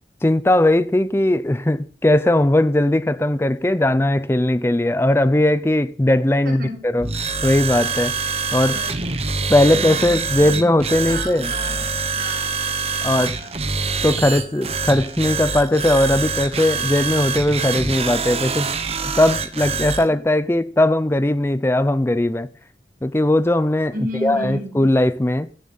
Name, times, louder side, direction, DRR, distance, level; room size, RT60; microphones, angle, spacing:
voice 1, 0.2-7.1 7.4-8.1 8.5-8.8 9.5-11.5 13.0-13.4 14.0-18.7 19.0-22.5 23.0-23.9 24.2-25.5, left 1 dB, 15° left, 0.4 m, -18 dB
voice 2, 6.4-6.9 8.7-9.0 9.6-10.7 11.1-12.6 13.0-13.9 23.9-24.8, equal, 60° right, 5.4 m, -33 dB
sound 1, 7.0-20.1, right 4 dB, 35° right, 0.9 m, -25 dB
16.5 x 7.1 x 4.1 m
head